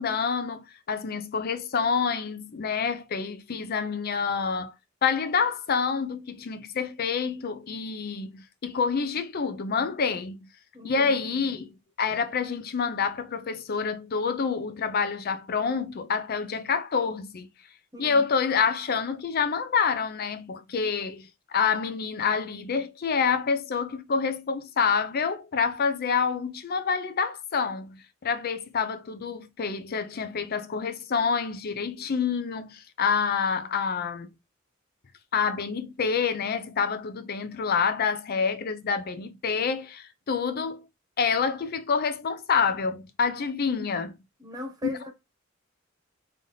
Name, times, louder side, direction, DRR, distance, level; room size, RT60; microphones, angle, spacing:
voice 1, 0.0-4.7 5.0-10.5 10.8-11.7 12.0-17.5 18.0-34.3 35.3-40.9 41.2-44.2, left 5 dB, 50° left, 0.5 m, -27 dB
voice 2, 10.7-11.5 17.9-18.2 44.4-45.1, left 2 dB, 20° right, 1.0 m, -39 dB
3.4 x 2.7 x 3.8 m
head